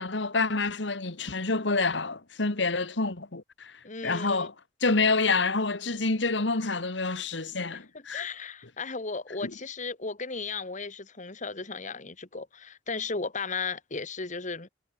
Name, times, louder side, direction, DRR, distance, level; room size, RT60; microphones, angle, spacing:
voice 1, 0.0-3.7 4.0-4.5 4.8-8.2 9.4-9.5, left 3 dB, 70° left, 1.9 m, -27 dB
voice 2, 3.8-4.5 7.9-14.7, left 4 dB, 45° left, 2.1 m, -35 dB
head